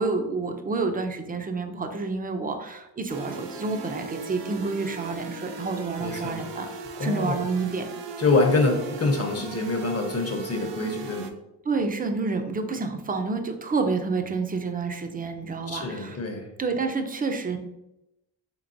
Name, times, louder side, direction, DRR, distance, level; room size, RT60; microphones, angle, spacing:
voice 1, 0.0-6.7 7.0-7.8 11.7-16.2 16.6-17.6, right 4 dB, 20° right, 6 dB, 0.4 m, -29 dB
sound 1, 3.1-11.3, right 4 dB, 80° right, 0.6 m, -38 dB
voice 2, 6.0-6.4 7.0-7.4 8.2-11.3 15.7-16.5, left 3 dB, 35° left, 2 dB, 0.7 m, -25 dB
4.5 x 3.4 x 2.6 m, 0.89 s
cardioid pair, 115°, 42 cm